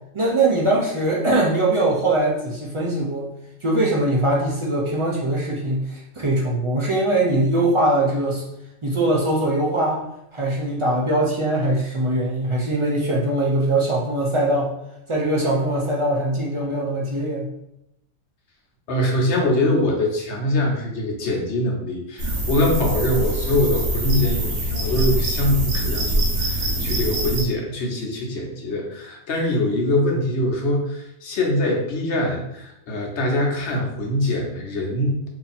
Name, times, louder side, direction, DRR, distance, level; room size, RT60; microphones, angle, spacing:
voice 1, 0.1-3.3 3.6-8.4 8.8-10.0 10.3-14.7 15.1-17.5, right 1 dB, 45° right, -3 dB, 0.4 m, -21 dB
voice 2, 18.9-35.3, left 1 dB, 60° left, 0 dB, 1.0 m, -23 dB
sound 1, 22.2-27.4, right 1 dB, 80° right, 1.3 m, -24 dB
2.8 x 2.7 x 4.0 m, 0.82 s
omnidirectional pair, 1.4 m